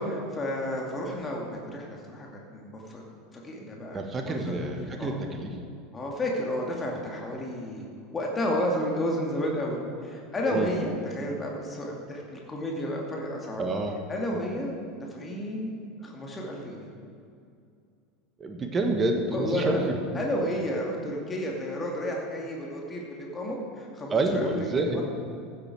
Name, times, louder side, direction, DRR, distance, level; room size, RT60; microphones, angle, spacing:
voice 1, 0.0-2.3 2.5-3.0 3.3-4.0 4.3-4.5 5.0-5.1 5.9-7.8 8.1-13.6 14.1-15.7 16.0-16.9 19.3-19.9 20.1-25.0, equal, 20° left, -1 dB, 2.3 m, -31 dB
voice 2, 3.9-5.6 10.5-10.7 13.6-14.0 18.4-20.0 24.1-25.0, right 2 dB, 25° right, 4 dB, 1.6 m, -28 dB
15.5 x 8.4 x 4.8 m, 2.4 s
figure-of-eight pair, 75°, 0 cm